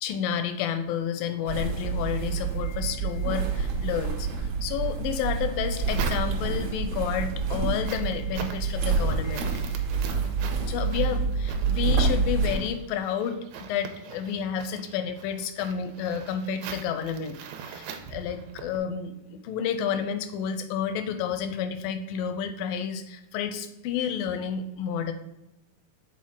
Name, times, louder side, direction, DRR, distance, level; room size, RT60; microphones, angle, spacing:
voice 1, 0.0-9.9 10.6-25.1, left 7 dB, 80° left, 9 dB, 2.2 m, -31 dB
sound 1, 1.5-12.5, right 5 dB, 70° right, 1.6 m, -27 dB
sound 2, 5.3-6.7 7.2-18.8, right 7 dB, 90° right, 2.5 m, -42 dB
7.5 x 4.1 x 3.7 m, 0.89 s
omnidirectional pair, 4.2 m